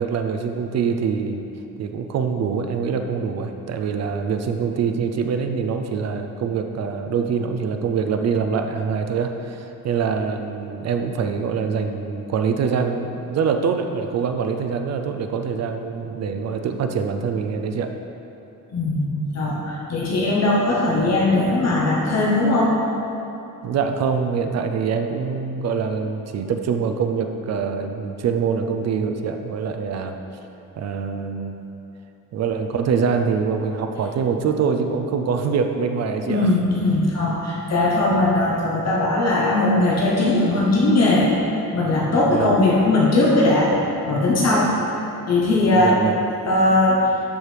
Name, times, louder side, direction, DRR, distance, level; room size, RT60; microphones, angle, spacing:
voice 1, 0.0-1.4 1.8-17.9 23.6-30.2 30.8-31.6 32.3-36.5 42.1-42.6 45.7-46.1, right 6 dB, 50° right, 6 dB, 0.4 m, -24 dB
voice 2, 18.7-22.8 36.3-41.3 41.7-43.7 44.0-44.7 45.2-46.0 46.5-47.0, left 2 dB, 50° left, -4 dB, 1.0 m, -19 dB
12.5 x 4.7 x 3.3 m, 2.9 s
cardioid pair, 175°, 34 cm